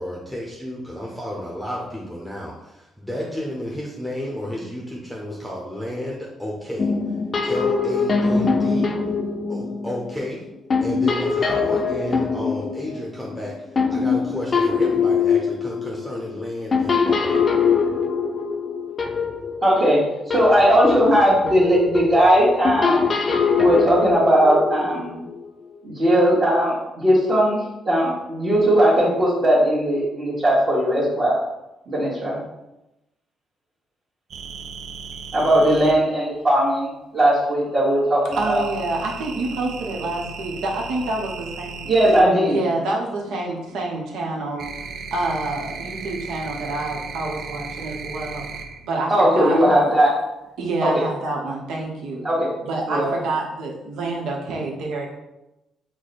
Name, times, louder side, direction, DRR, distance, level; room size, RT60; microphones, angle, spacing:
voice 1, 0.0-6.9 7.4-8.9 9.5-10.4 10.8-17.5, equal, ahead, -4 dB, 0.7 m, -31 dB
sound 1, 6.8-10.3 10.7-20.1 20.3-25.4, left 5 dB, 40° left, 0.5 m, -23 dB
voice 2, 19.6-23.1 23.6-25.2 25.8-27.6 27.8-31.4 31.9-32.4 35.3-36.9 37.1-38.6 41.8-42.6 49.1-50.1 50.8-50.9 52.2-52.5 52.9-53.1, equal, 40° right, -10 dB, 1.3 m, -18 dB
sound 2, 34.3-35.9 38.3-42.2 43.6-48.9 49.2-49.8, right 5 dB, 65° right, 0.4 m, -35 dB
voice 3, 38.4-41.9 42.4-44.6 45.1-49.6 50.6-52.3 52.6-55.1, right 2 dB, 85° right, -1 dB, 0.9 m, -27 dB
4.7 x 2.2 x 4.1 m, 0.96 s
cardioid pair, 90°, 0 cm